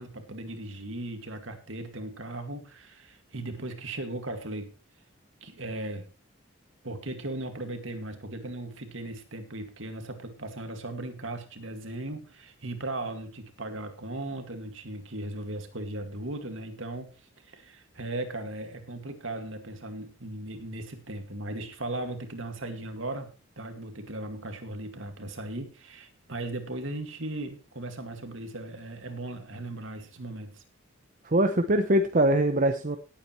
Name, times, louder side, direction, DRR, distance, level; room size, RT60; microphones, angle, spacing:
voice 1, 0.0-4.7 5.4-6.1 6.8-30.6, right 2 dB, 70° right, 6 dB, 2.2 m, -37 dB
voice 2, 31.2-33.0, right 1 dB, 40° right, 6 dB, 0.8 m, -23 dB
18.0 x 8.7 x 3.2 m, 0.32 s
head